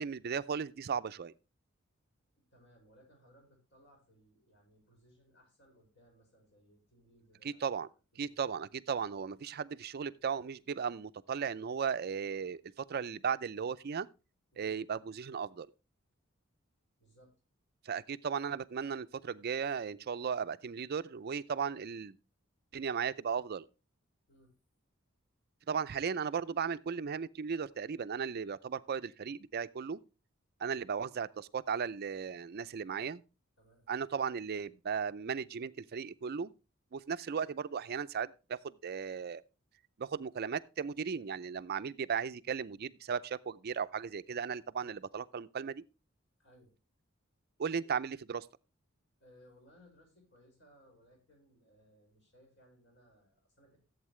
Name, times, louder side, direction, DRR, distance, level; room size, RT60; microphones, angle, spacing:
voice 1, 0.0-1.3 7.4-7.9 8.2-14.1 14.6-15.7 17.8-22.1 22.7-23.7 25.7-30.0 30.6-33.2 33.9-36.5 36.9-39.4 40.0-45.8 47.6-48.5, right 6 dB, 50° right, 0.4 m, -36 dB
voice 2, 2.5-7.8 8.1-9.0 14.5-14.7 17.0-17.3 24.3-24.5 33.6-33.9 46.4-46.7 49.2-53.8, equal, 60° left, 5.7 m, -64 dB
14.5 x 8.0 x 3.1 m
head